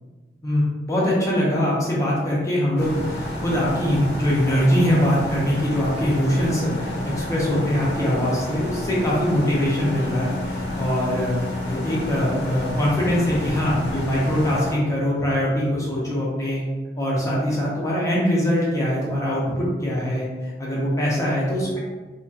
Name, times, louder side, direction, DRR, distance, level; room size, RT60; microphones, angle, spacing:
voice 1, 0.4-11.4 11.6-16.6 17.0-21.8, equal, 20° left, -6 dB, 0.7 m, -22 dB
sound 1, 2.8-14.7, left 1 dB, 65° left, 0.8 m, -30 dB
2.9 x 2.8 x 2.4 m, 1.3 s
head